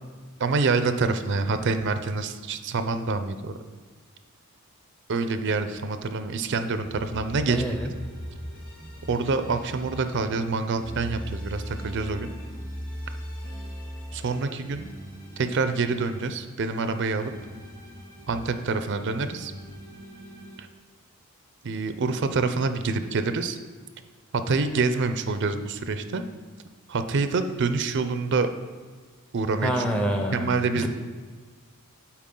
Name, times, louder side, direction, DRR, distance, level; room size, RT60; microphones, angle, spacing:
voice 1, 0.4-3.6 5.1-7.6 9.1-12.3 14.1-14.8 15.4-17.3 18.3-19.5 20.6-20.7 21.6-23.6 24.5-26.2 26.9-28.5 29.3-29.8 30.3-30.9, right 4 dB, 55° right, 9 dB, 0.5 m, -26 dB
sound 1, 6.8-10.3 10.7-16.3 16.7-20.6, equal, 40° left, 2.3 m, -39 dB
voice 2, 7.5-7.9 29.6-30.5 30.8-30.9, equal, 5° left, 3 dB, 0.7 m, -26 dB
11.5 x 4.5 x 3.8 m, 1.5 s
head